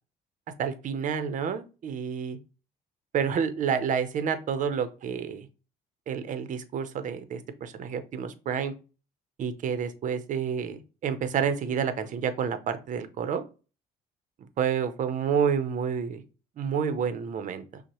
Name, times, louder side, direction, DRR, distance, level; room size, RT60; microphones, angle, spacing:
voice 1, 0.6-2.4 3.1-5.5 6.1-8.7 9.4-13.4 14.6-16.2 16.6-17.8, right 7 dB, 50° right, 10 dB, 0.6 m, -29 dB
6.0 x 2.1 x 2.9 m, 0.33 s
cardioid pair, 110°, 17 cm